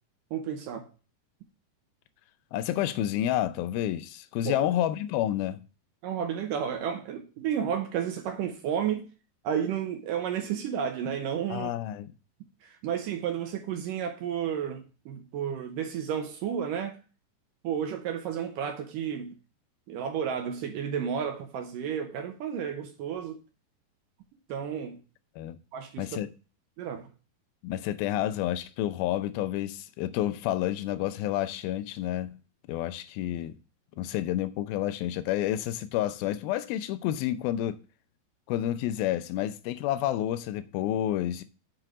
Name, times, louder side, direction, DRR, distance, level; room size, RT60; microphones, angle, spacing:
voice 1, 0.3-0.9 4.4-4.7 6.0-9.1 9.4-11.7 12.6-17.0 17.6-19.4 19.9-23.4 24.5-25.0 25.7-26.1 26.8-27.1, right 8 dB, 75° right, 2.1 m, -32 dB
voice 2, 2.5-5.6 11.5-12.1 25.4-25.6 26.0-26.3 27.6-32.3 32.7-33.6 34.0-37.8 38.5-41.4, left 12 dB, 80° left, 2.2 m, -29 dB
7.8 x 4.6 x 4.8 m
omnidirectional pair, 4.8 m